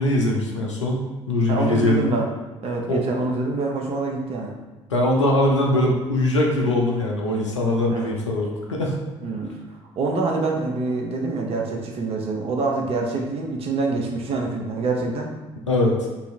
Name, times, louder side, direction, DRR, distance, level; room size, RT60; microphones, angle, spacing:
voice 1, 0.0-2.1 2.9-3.0 4.9-9.0 15.7-16.1, left 1 dB, 80° left, -1 dB, 0.4 m, -21 dB
voice 2, 1.5-2.3 2.6-4.5 7.9-8.1 9.2-9.5 10.0-15.3, right 3 dB, 40° right, 0 dB, 0.6 m, -25 dB
2.7 x 2.4 x 3.2 m, 1.3 s
figure-of-eight pair, 55°, 15 cm